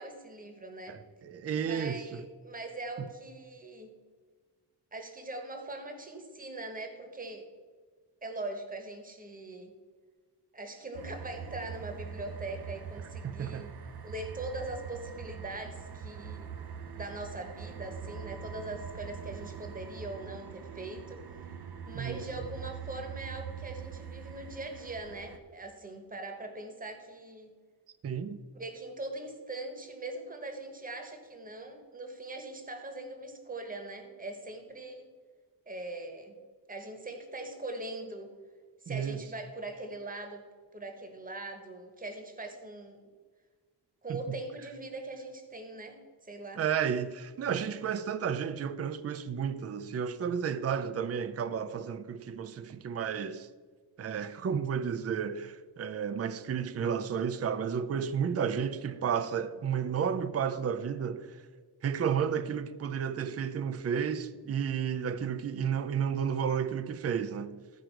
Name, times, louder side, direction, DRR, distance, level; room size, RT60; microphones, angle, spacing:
voice 1, 0.0-1.0 1.5-3.9 4.9-7.5 8.2-9.7 10.5-13.7 14.0-16.5 16.9-21.5 21.9-27.5 28.5-35.1 35.7-36.4 36.7-38.4 38.8-40.4 40.7-43.0 44.0-46.6, right 2 dB, 20° right, 1.1 m, -41 dB
voice 2, 0.9-2.2 3.0-3.1 13.2-13.7 21.9-22.2 28.0-28.4 38.9-39.2 44.1-44.4 46.6-53.5 54.0-61.4 61.8-67.6, right 7 dB, 40° right, 0.4 m, -32 dB
sound 1, 10.9-25.4, right 7 dB, 65° right, 0.8 m, -43 dB
14.0 x 5.0 x 4.5 m
wide cardioid pair, 180°, 41 cm